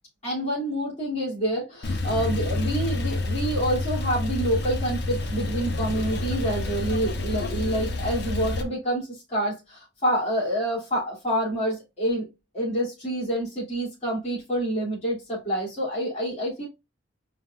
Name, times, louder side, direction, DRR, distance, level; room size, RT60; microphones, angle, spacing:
voice 1, 0.2-12.3 12.5-16.7, right 1 dB, 35° left, 3.1 m, -27 dB
Male speech man speaking / Car / Idling, 1.8-8.6, left 2 dB, 60° left, 0.9 m, -28 dB
5.2 x 4.0 x 2.5 m
head